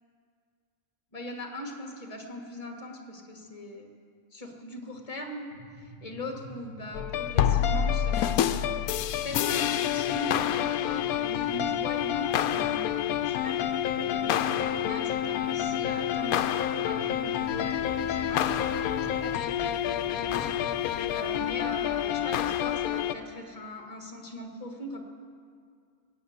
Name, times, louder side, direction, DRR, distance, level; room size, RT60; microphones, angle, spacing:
voice 1, 1.1-3.9 4.3-5.4 5.8-18.5 18.8-19.4 20.0-25.0, left 1 dB, 25° left, 2 dB, 1.7 m, -40 dB
sound 1, 5.5-20.7, equal, 70° right, 5.8 m, -47 dB
sound 2, 6.9-23.1, left 10 dB, 85° left, 1.0 m, -28 dB
sound 3, 17.2-22.9, right 1 dB, 30° right, 0.7 m, -47 dB
18.0 x 8.5 x 7.9 m, 2.2 s
omnidirectional pair, 1.5 m